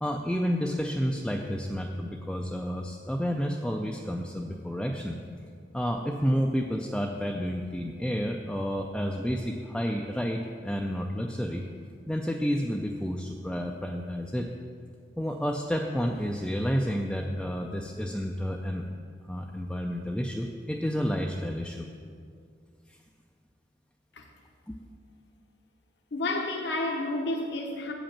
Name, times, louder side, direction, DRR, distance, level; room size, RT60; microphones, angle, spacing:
voice 1, 0.0-5.2 5.7-11.6 12.1-14.5 15.2-18.9 19.3-21.9 22.9-23.0 24.7-24.8, equal, 5° left, 0.3 m, -30 dB
voice 2, 26.1-27.9, left 2 dB, 65° left, 0.9 m, -30 dB
8.0 x 5.1 x 7.3 m
head